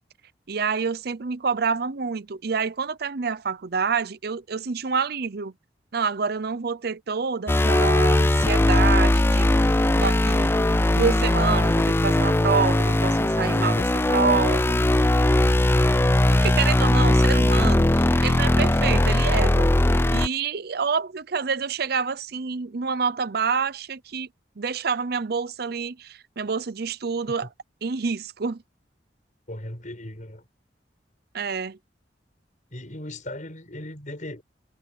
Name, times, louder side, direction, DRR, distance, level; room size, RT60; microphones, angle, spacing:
voice 1, 0.5-5.5 5.9-9.5 9.9-10.5 10.9-14.8 16.3-19.8 20.1-24.3 24.6-27.5 27.8-28.6 31.3-31.8, right 5 dB, 60° right, 0.7 m, -27 dB
sound 1, 7.5-20.3, left 1 dB, 15° left, 0.5 m, -19 dB
voice 2, 29.5-30.4 32.7-34.4, left 1 dB, 45° left, 6.6 m, -38 dB
head